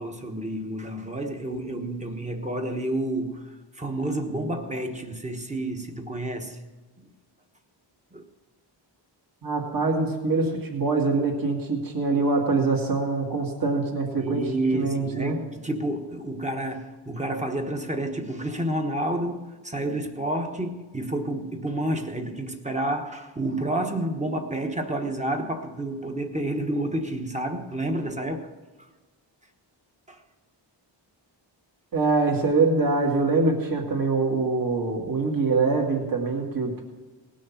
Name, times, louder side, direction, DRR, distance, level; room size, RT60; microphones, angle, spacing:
voice 1, 0.0-6.6 7.0-7.1 8.1-8.2 14.1-28.5 30.1-30.2, right 1 dB, 15° right, 1.2 m, -30 dB
voice 2, 9.4-14.4 14.7-15.4 31.9-36.8, right 3 dB, 45° right, 2.1 m, -24 dB
18.5 x 6.3 x 7.2 m
wide cardioid pair, 145°, 45 cm